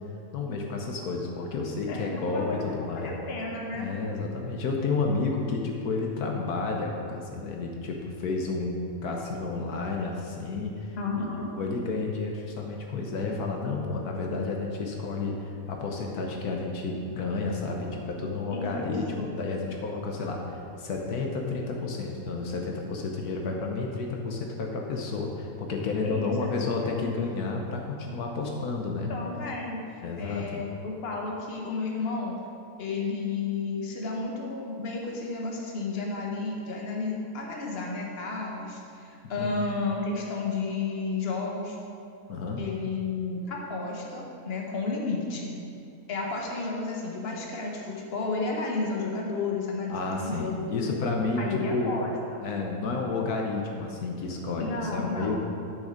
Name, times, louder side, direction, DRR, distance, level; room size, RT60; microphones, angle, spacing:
voice 1, 0.3-3.1 3.7-11.3 11.6-29.1 30.0-30.6 39.4-39.6 42.3-42.6 49.9-52.0 52.4-55.3, left 3 dB, 75° left, 1 dB, 1.4 m, -31 dB
voice 2, 1.9-3.9 11.0-11.5 18.5-19.3 26.0-27.2 29.1-29.8 30.2-32.4 32.8-41.8 42.6-45.6 46.1-51.0 51.4-52.4 54.6-55.3, left 3 dB, 40° left, -1 dB, 1.4 m, -32 dB
9.1 x 6.4 x 5.1 m, 2.5 s
omnidirectional pair, 1.6 m